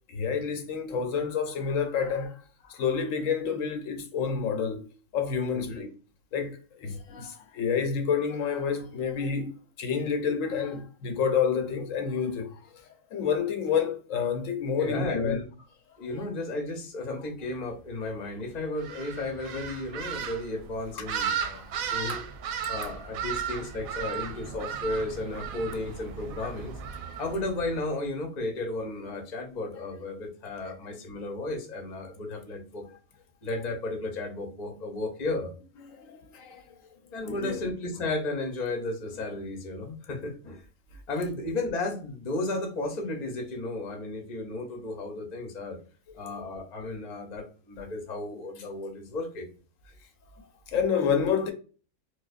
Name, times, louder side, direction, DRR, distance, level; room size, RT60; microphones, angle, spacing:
voice 1, 0.1-2.4 2.6-4.9 5.1-5.9 6.3-12.7 13.1-15.4 21.0-21.1 21.5-21.6 21.9-22.0 35.9-36.6 37.2-37.6 46.3-46.4 50.4-51.5, left 6 dB, 75° left, 1.0 m, -29 dB
voice 2, 14.8-15.5 16.0-21.6 21.9-22.2 22.7-26.7 27.2-32.8 33.4-35.5 37.1-40.7 41.1-45.8 46.1-49.5 49.8-49.9, left 2 dB, 40° left, 0.8 m, -34 dB
sound 1, 18.8-27.9, right 7 dB, 85° right, 1.0 m, -35 dB
4.5 x 2.2 x 2.4 m
omnidirectional pair, 1.4 m